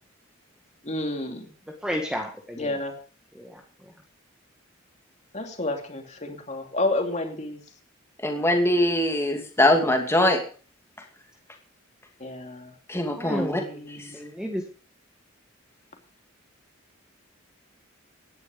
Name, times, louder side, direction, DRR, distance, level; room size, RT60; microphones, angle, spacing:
voice 1, 0.8-1.5 2.6-2.9 5.3-7.6 12.2-12.7 13.2-14.0, left 2 dB, 35° left, 4 dB, 2.8 m, -30 dB
voice 2, 1.8-2.8 3.3-3.6 13.2-13.8 14.1-14.6, equal, 5° right, 3 dB, 1.7 m, -32 dB
voice 3, 8.2-10.4 12.9-13.6 14.0-14.1, left 1 dB, 10° left, 4 dB, 2.6 m, -22 dB
17.0 x 11.0 x 5.1 m, 0.39 s
head